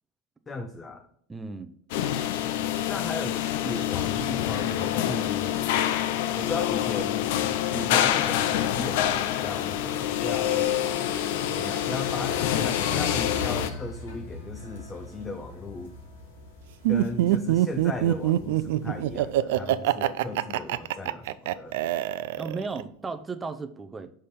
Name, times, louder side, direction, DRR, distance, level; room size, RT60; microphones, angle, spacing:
voice 1, 0.5-1.1 2.9-5.7 6.4-7.3 7.7-10.7 11.5-16.0 16.9-21.8, left 3 dB, 20° left, 0.6 m, -36 dB
voice 2, 1.3-1.7 22.4-24.1, right 4 dB, 15° right, 0.7 m, -35 dB
sound 1, 1.9-13.7, left 11 dB, 70° left, 0.6 m, -26 dB
sound 2, 9.4-19.4, left 2 dB, 90° left, 2.3 m, -40 dB
Laughter, 16.8-22.8, right 14 dB, 75° right, 0.3 m, -24 dB
5.5 x 5.1 x 4.2 m
hypercardioid pair, 105°, 0 cm